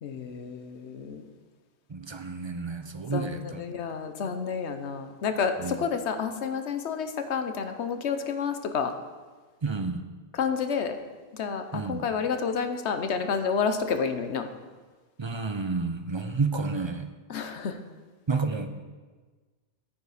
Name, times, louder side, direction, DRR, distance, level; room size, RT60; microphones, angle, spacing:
voice 1, 0.0-1.2 3.1-8.9 10.3-11.0 11.3-14.5 17.3-17.8, left 6 dB, 75° left, 8 dB, 1.1 m, -30 dB
voice 2, 1.9-3.6 5.6-5.8 9.6-10.0 11.7-12.0 15.2-17.1 18.3-18.7, right 4 dB, 35° right, 8 dB, 0.5 m, -30 dB
9.3 x 9.3 x 4.9 m, 1.4 s
omnidirectional pair, 1.2 m